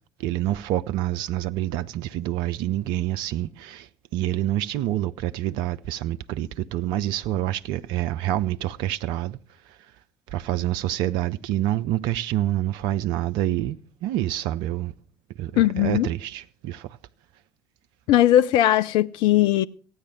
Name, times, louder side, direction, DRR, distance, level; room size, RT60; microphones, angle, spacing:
voice 1, 0.2-9.4 10.3-14.9 15.4-17.0, right 13 dB, 55° right, 0.5 m, -27 dB
voice 2, 15.6-16.1 18.1-19.7, left 13 dB, 55° left, 0.5 m, -19 dB
15.0 x 9.5 x 6.0 m
figure-of-eight pair, 55°, 9 cm